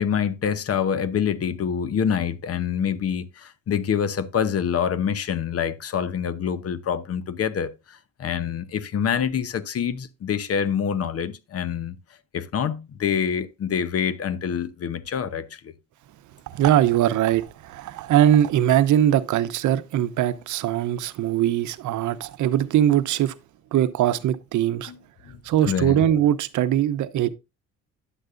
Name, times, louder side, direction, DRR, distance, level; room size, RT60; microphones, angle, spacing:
voice 1, 0.0-12.0 12.3-15.7 24.9-25.0 25.2-25.4 25.7-26.0, left 8 dB, 50° left, 0.8 m, -26 dB
voice 2, 16.5-23.3 23.7-24.9 25.4-27.3, right 11 dB, 75° right, 0.7 m, -21 dB
9.9 x 7.8 x 2.5 m
cardioid pair, 90°, 30 cm